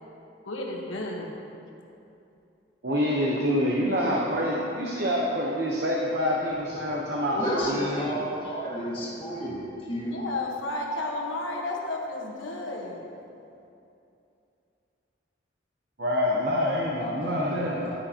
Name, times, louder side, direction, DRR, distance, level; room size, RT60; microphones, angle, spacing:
voice 1, 0.4-1.4 7.4-7.8 10.1-13.0, left 2 dB, 90° left, -1 dB, 1.3 m, -32 dB
voice 2, 2.8-7.4 7.6-8.3 16.0-17.8, equal, 55° right, -3 dB, 0.9 m, -26 dB
voice 3, 7.3-10.2 17.0-18.0, equal, 30° left, -6 dB, 1.8 m, -32 dB
11.0 x 10.5 x 2.9 m, 2.7 s
head